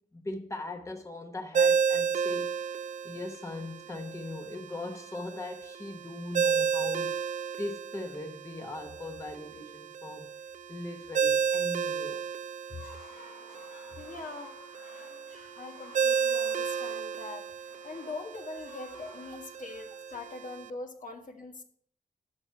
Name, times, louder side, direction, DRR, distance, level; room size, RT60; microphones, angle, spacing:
voice 1, 0.1-2.5 3.0-7.1 7.6-10.3 10.7-12.2 12.7-12.8 19.0-19.2, left 2 dB, 20° left, 1.0 m, -39 dB
Ringtone, 1.5-20.7, right 6 dB, 55° right, 0.4 m, -32 dB
sound 1, 12.6-20.7, left 2 dB, 85° left, 2.0 m, -53 dB
voice 2, 14.0-14.5 15.6-17.5 17.8-21.6, left 3 dB, 60° left, 1.4 m, -42 dB
11.5 x 6.0 x 4.5 m
cardioid pair, 80°, 15 cm